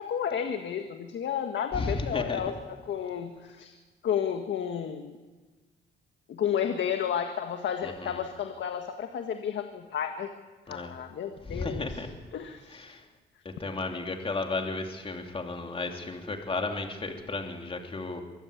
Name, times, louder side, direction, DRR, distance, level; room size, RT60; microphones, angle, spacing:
voice 1, 0.0-3.7 4.0-5.2 6.3-10.3 10.7-12.0 12.3-12.8, left 8 dB, 65° left, 6 dB, 1.7 m, -32 dB
voice 2, 1.7-2.4 10.7-10.9 11.5-12.1 12.9-13.0 13.6-18.2, left 3 dB, 25° left, 3 dB, 2.9 m, -33 dB
24.0 x 15.0 x 8.5 m, 1.3 s
cardioid pair, 90°, 20 cm